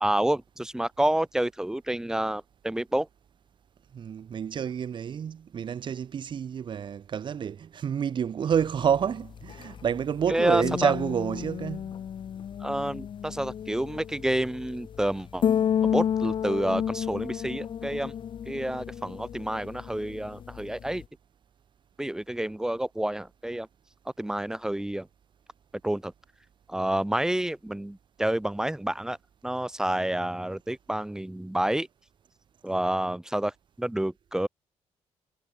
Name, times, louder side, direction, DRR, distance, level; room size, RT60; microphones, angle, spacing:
voice 1, 0.0-3.1 10.3-10.9 12.6-15.4 15.8-18.1 18.5-21.0 22.0-23.7 24.2-25.1 25.8-26.1 26.7-29.2 29.4-31.9 32.6-34.5, right 1 dB, 5° right, 0.6 m, -29 dB
voice 2, 3.9-12.0, right 8 dB, 45° right, 1.5 m, -29 dB
sound 1, 8.5-21.0, left 9 dB, 45° left, 0.7 m, -32 dB
cardioid pair, 155°, 11 cm